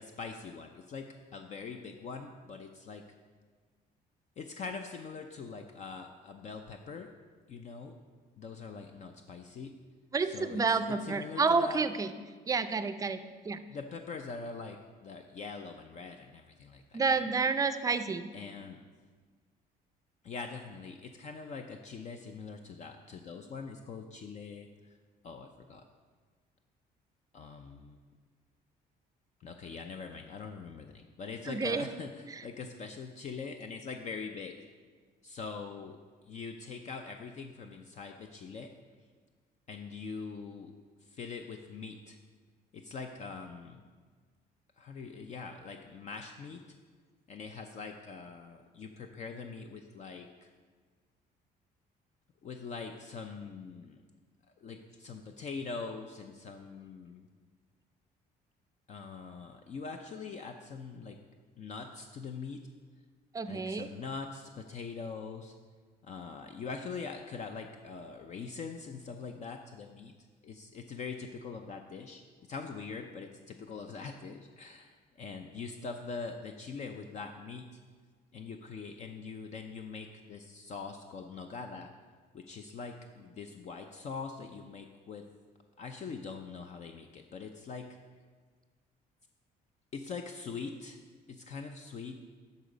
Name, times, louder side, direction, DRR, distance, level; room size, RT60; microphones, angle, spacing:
voice 1, 0.0-3.0 4.4-7.1 7.5-8.0 8.4-9.7 10.2-10.6 11.0-11.8 13.7-17.0 18.3-18.8 20.2-24.9 25.2-25.8 27.3-28.0 29.4-34.7 35.2-36.0 36.3-38.7 39.7-40.7 41.0-42.2 42.7-43.8 44.8-46.8 47.3-50.5 52.4-54.0 54.6-57.3 58.9-61.2 61.6-62.6 63.4-65.5 66.0-70.1 70.4-72.2 72.5-77.8 78.3-81.9 82.3-85.2 85.8-87.9 89.9-91.0 91.3-92.2, left 4 dB, 45° left, 5 dB, 0.5 m, -43 dB
voice 2, 10.1-12.1 12.5-13.6 16.9-18.3 31.5-31.9 32.3-32.4 63.3-63.9, right 4 dB, 20° right, 10 dB, 0.5 m, -30 dB
12.0 x 4.0 x 5.1 m, 1.5 s
cardioid pair, 110°, 17 cm